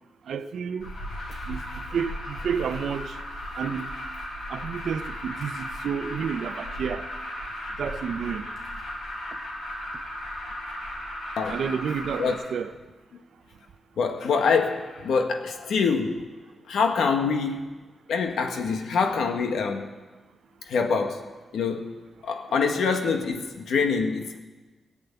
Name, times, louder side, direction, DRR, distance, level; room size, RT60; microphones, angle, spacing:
voice 1, 0.3-0.9 1.5-3.2 3.6-3.9 4.5-7.1 7.8-8.4 11.5-12.7, right 7 dB, 75° right, 0.8 m, -30 dB
Alarm, 0.8-12.3, left 1 dB, 70° left, 5.7 m, -36 dB
voice 2, 14.0-16.2 16.7-17.7 18.1-19.9 20.7-21.2 21.5-21.9 22.2-24.4, left 5 dB, 85° left, 1.6 m, -25 dB
18.0 x 8.4 x 8.2 m
wide cardioid pair, 125°, 0 cm